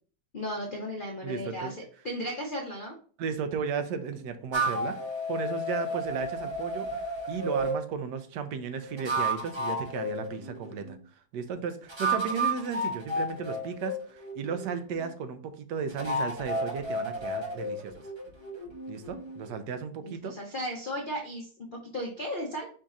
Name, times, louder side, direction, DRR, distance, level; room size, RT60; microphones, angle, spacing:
voice 1, 0.3-3.0 20.0-22.7, equal, 75° left, 0 dB, 0.4 m, -35 dB
voice 2, 1.2-1.7 3.2-5.0 5.3-11.0 11.3-18.0 18.9-20.3, right 6 dB, 75° right, 9 dB, 1.2 m, -35 dB
sound 1, 4.5-7.8 8.8-11.0 11.9-15.1 15.9-19.5, right 1 dB, 30° right, 0.5 m, -32 dB
5.1 x 2.4 x 4.0 m, 0.44 s
omnidirectional pair, 1.9 m